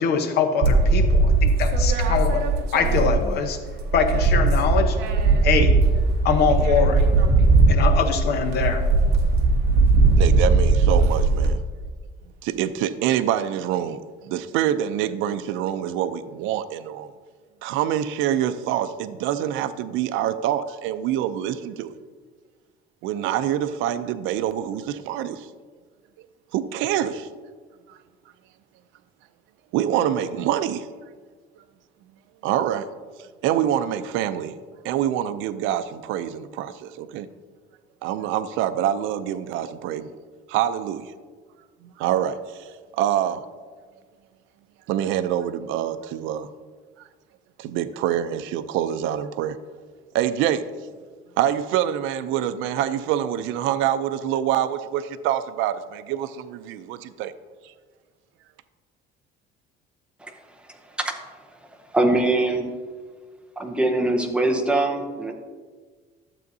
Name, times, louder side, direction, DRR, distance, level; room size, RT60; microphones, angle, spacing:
voice 1, 0.0-2.4 2.7-3.6 3.9-5.0 5.4-5.8 6.2-7.0 7.7-8.8, left 6 dB, 55° left, 6 dB, 0.9 m, -23 dB
sound 1, 0.6-3.5 3.8-11.5, right 3 dB, 55° right, 1.0 m, -19 dB
voice 2, 10.2-11.6 12.4-17.1 17.6-21.9 23.0-25.5 26.5-27.3 29.7-30.9 32.4-32.9 33.4-34.6 34.8-37.3 38.0-40.1 40.5-41.1 41.8-43.4 44.9-46.5 47.0-47.1 47.6-49.6 50.1-50.7 51.4-57.3, right 11 dB, 85° right, 12 dB, 0.5 m, -25 dB
voice 3, 61.9-62.7 63.6-65.3, right 2 dB, 5° right, 2 dB, 0.7 m, -22 dB
12.0 x 7.7 x 2.7 m, 1.5 s
cardioid pair, 165°, 20 cm